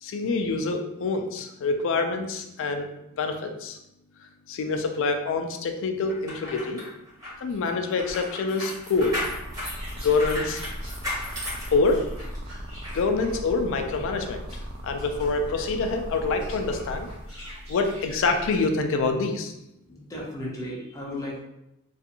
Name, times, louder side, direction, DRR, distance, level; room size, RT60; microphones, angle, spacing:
voice 1, 0.0-2.9 3.2-3.8 4.5-6.8 7.4-9.2 10.0-10.6 11.7-12.1 12.9-14.4 14.8-17.1 17.4-19.5, left 3 dB, 65° left, 5 dB, 0.4 m, -26 dB
sound 1, 6.1-12.4 12.8-13.0, left 1 dB, 15° right, 1.1 m, -35 dB
sound 2, 8.9-17.1, right 1 dB, 45° right, 0.3 m, -39 dB
sound 3, 9.6-18.7, equal, 75° right, 1.1 m, -41 dB
voice 2, 19.9-21.4, left 1 dB, 15° left, -5 dB, 0.6 m, -35 dB
2.5 x 2.4 x 2.7 m, 0.85 s
head